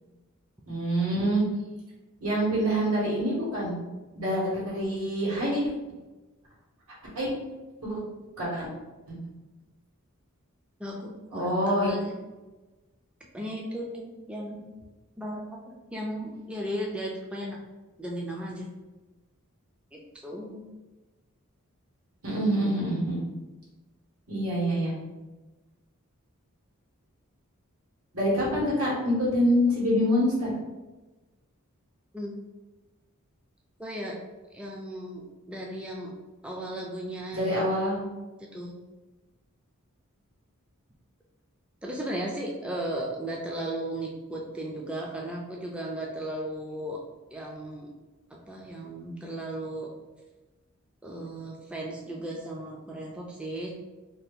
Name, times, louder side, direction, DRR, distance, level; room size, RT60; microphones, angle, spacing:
voice 1, 0.7-1.4 2.2-3.7 4.1-5.6 7.1-7.3 7.8-8.0 8.4-8.7 9.1-9.2 11.3-11.9 22.2-23.2 24.3-24.9 28.1-30.5 37.3-38.0, equal, 80° right, -6 dB, 1.4 m, -26 dB
voice 2, 10.8-12.2 13.3-14.7 15.2-17.6 18.0-18.7 19.9-20.6 32.1-32.3 33.8-34.2 34.5-36.1 36.4-37.6 38.4-38.8 41.8-47.0 47.3-47.9 48.3-49.9 51.0-53.7, right 1 dB, 5° right, -2 dB, 0.3 m, -36 dB
2.7 x 2.4 x 3.5 m, 1.2 s
head